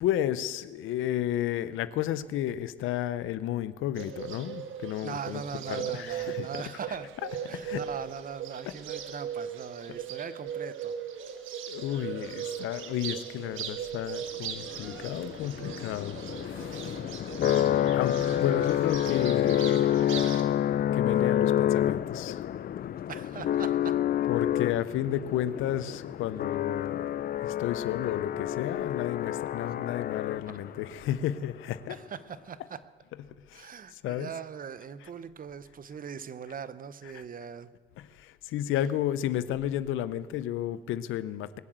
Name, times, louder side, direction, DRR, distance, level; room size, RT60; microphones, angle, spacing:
voice 1, 0.0-5.4 5.7-6.5 7.5-7.8 11.7-16.9 17.9-20.4 20.9-22.4 24.3-27.1 27.4-32.0 33.5-34.3 38.0-41.6, left 12 dB, 90° left, 15 dB, 0.7 m, -32 dB
Bird, 4.0-20.4, right 8 dB, 85° right, 1.4 m, -39 dB
voice 2, 5.0-7.1 7.5-10.9 23.1-24.0 30.4-30.6 31.9-32.8 33.5-37.7, right 7 dB, 45° right, 15 dB, 0.8 m, -40 dB
sound 1, 14.6-30.8, left 11 dB, 50° left, 0.4 m, -28 dB
21.5 x 7.4 x 8.0 m, 1.5 s
cardioid pair, 90°, 20 cm